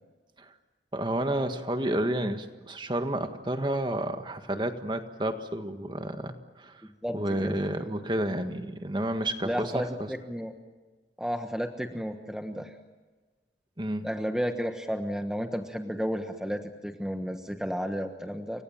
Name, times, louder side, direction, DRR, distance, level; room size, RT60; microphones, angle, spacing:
voice 1, 0.9-6.8 7.1-9.9 13.8-14.1, right 1 dB, 25° right, 7 dB, 1.7 m, -30 dB
voice 2, 7.0-7.6 9.4-10.5 11.2-12.7 14.0-18.6, equal, 5° right, 5 dB, 1.3 m, -32 dB
29.5 x 25.0 x 7.3 m, 1.3 s
head